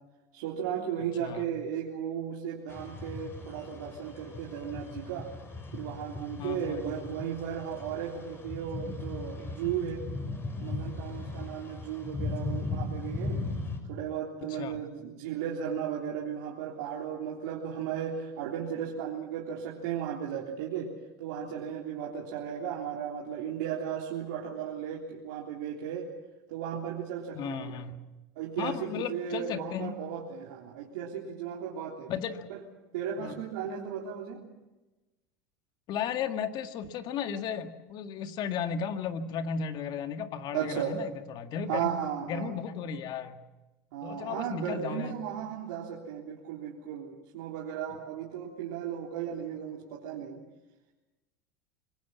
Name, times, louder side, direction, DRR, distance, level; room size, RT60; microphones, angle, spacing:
voice 1, 0.3-5.3 5.7-10.1 10.6-13.4 13.9-20.9 21.2-26.1 26.5-27.7 28.4-32.1 32.5-32.6 32.9-34.4 40.5-41.0 41.7-42.5 43.9-50.4, right 8 dB, 80° right, -4 dB, 3.5 m, -35 dB
sound 1, 2.7-13.8, left 2 dB, 25° left, 5.7 m, -38 dB
voice 2, 6.4-6.8 14.5-14.8 27.3-28.0 28.6-30.0 32.1-32.5 33.2-33.4 35.9-41.9 42.3-43.4 44.0-45.1 47.9-48.0, left 7 dB, 50° left, 7 dB, 1.9 m, -35 dB
26.0 x 20.0 x 7.3 m, 1.1 s
supercardioid pair, 100°, 9 cm